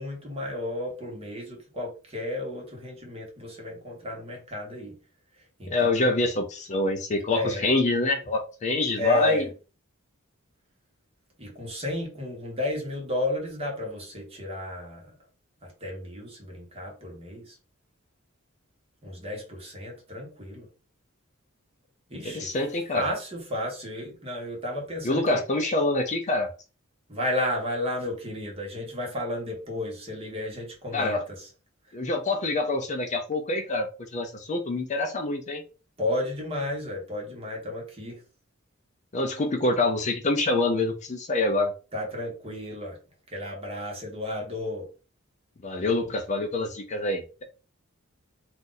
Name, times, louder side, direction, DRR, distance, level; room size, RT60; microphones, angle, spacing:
voice 1, 0.0-5.0 5.4-6.2 7.3-7.7 9.0-9.5 11.4-15.2 15.6-17.6 19.0-20.7 22.1-22.5 22.9-25.4 27.1-31.5 31.8-32.0 36.0-38.2 41.9-43.0 43.3-44.9, left 1 dB, 30° right, 1.3 m, -33 dB
voice 2, 5.7-9.5 22.2-23.1 25.0-26.5 30.9-31.2 31.9-33.9 34.1-35.6 39.1-41.7 45.6-47.4, left 2 dB, 35° left, 0.5 m, -26 dB
2.6 x 2.5 x 3.9 m
head